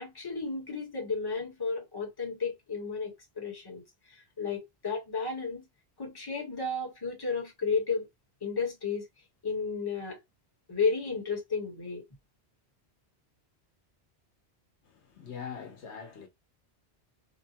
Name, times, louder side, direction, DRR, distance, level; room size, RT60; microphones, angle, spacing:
voice 1, 0.0-3.8 4.1-5.6 6.0-8.1 8.4-9.0 9.4-10.2 10.7-12.0, left 4 dB, 20° left, 1.1 m, -33 dB
voice 2, 14.8-16.3, left 6 dB, 80° left, 1.1 m, -42 dB
2.9 x 2.2 x 2.7 m
omnidirectional pair, 1.1 m